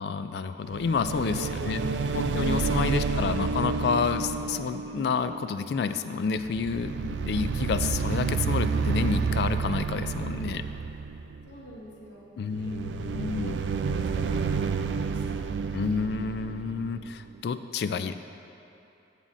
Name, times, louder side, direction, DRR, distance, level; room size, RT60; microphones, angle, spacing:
voice 1, 0.0-1.8 2.1-10.6 12.4-13.6 15.7-18.1, left 5 dB, 65° left, 11 dB, 0.3 m, -29 dB
sound 1, 0.7-6.0 6.3-11.6 12.5-17.4, right 5 dB, 80° right, 0.3 m, -30 dB
voice 2, 0.9-2.0 2.5-3.0 11.4-12.4 12.6-15.7, equal, 80° left, -5 dB, 1.7 m, -45 dB
11.0 x 7.4 x 2.6 m, 2.9 s
head